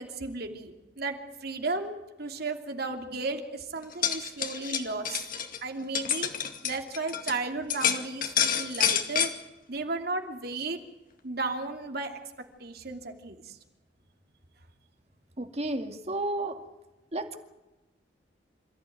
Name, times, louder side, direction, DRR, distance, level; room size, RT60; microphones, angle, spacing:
voice 1, 0.0-5.2 5.6-6.3 6.6-9.3 9.7-10.8 11.2-12.2 12.6-13.6, right 3 dB, 60° right, 5 dB, 2.8 m, -34 dB
sound 1, 3.8-7.4 7.7-9.3, left 8 dB, 50° left, 2.3 m, -28 dB
voice 2, 15.4-16.6 17.1-17.4, right 2 dB, 35° right, 7 dB, 2.2 m, -32 dB
27.0 x 15.0 x 9.4 m, 1.0 s
head